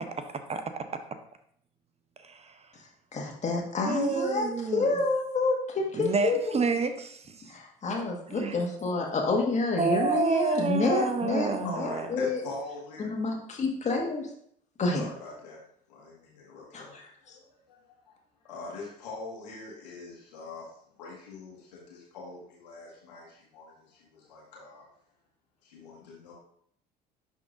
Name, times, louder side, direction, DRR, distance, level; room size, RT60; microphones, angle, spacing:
voice 1, 0.5-0.9 2.2-2.6 3.9-5.0 6.0-7.5 8.3-8.5 9.8-12.1, right 4 dB, 30° right, 8 dB, 0.7 m, -29 dB
voice 2, 3.1-6.6 7.5-12.4 13.0-14.3 14.8-15.1 16.7-17.4, left 3 dB, 35° left, 0 dB, 1.7 m, -29 dB
voice 3, 11.6-13.1 15.0-15.6 15.9-16.9 17.2-18.2 18.4-20.7 21.0-24.9 25.6-26.3, left 3 dB, 80° left, -4 dB, 1.9 m, -43 dB
11.0 x 3.7 x 2.5 m, 0.65 s
hypercardioid pair, 60°, 21 cm